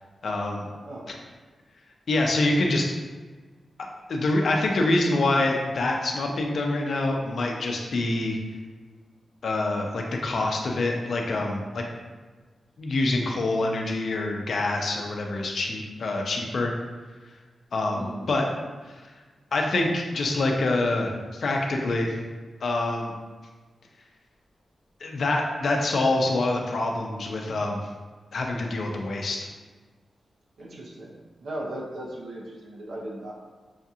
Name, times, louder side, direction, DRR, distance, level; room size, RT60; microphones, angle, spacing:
voice 1, 0.2-0.7 1.1-1.2 2.1-2.9 4.1-8.4 9.4-11.8 12.8-16.7 17.7-18.5 19.5-22.2 22.6-23.1 25.0-27.8 28.3-29.4, left 2 dB, 65° left, 1 dB, 0.5 m, -26 dB
voice 2, 17.9-18.3 30.6-31.1 31.4-33.3, right 1 dB, 75° right, -2 dB, 0.8 m, -37 dB
5.7 x 2.4 x 2.7 m, 1.3 s
wide cardioid pair, 125°, 0 cm